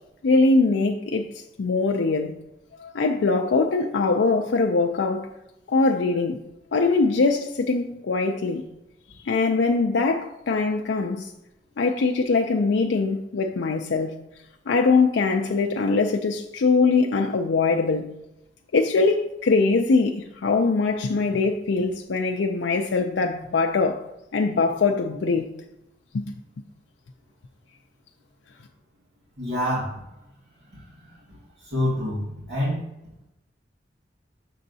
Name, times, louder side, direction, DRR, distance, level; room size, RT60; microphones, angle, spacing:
voice 1, 0.2-2.4 2.8-5.3 5.7-6.4 6.7-8.6 9.2-11.3 11.8-14.1 14.7-18.1 18.7-24.0 24.3-25.5 26.1-26.3, left 3 dB, 80° left, 0.5 m, -22 dB
voice 2, 29.4-30.0 30.7-30.8 31.7-32.8, left 1 dB, 80° right, 2.0 m, -26 dB
6.9 x 6.3 x 2.7 m
head